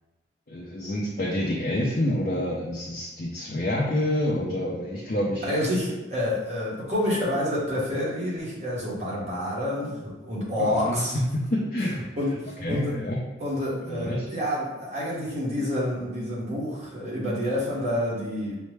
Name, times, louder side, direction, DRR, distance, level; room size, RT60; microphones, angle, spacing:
voice 1, 0.5-5.5 10.6-11.0 11.3-12.0 12.6-13.2 13.9-14.2, left 1 dB, 50° left, -5 dB, 0.5 m, -27 dB
voice 2, 5.4-11.2 12.2-12.9 13.4-18.6, left 1 dB, 40° right, -6 dB, 1.3 m, -28 dB
5.4 x 2.1 x 3.3 m, 1.1 s
head